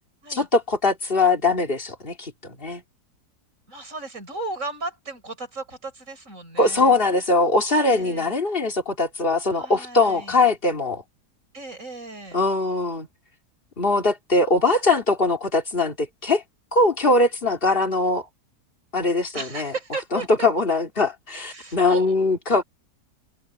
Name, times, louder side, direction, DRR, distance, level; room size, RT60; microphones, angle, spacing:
voice 1, 0.3-2.8 6.6-11.0 12.3-13.1 13.8-16.4 16.7-18.2 18.9-19.7 20.1-22.6, left 3 dB, 35° left, 2.9 m, -21 dB
voice 2, 3.7-7.0 7.9-8.3 9.5-10.4 11.5-12.4 19.3-20.3 21.5-22.1, right 3 dB, 55° right, 6.8 m, -35 dB
omnidirectional pair, 1.7 m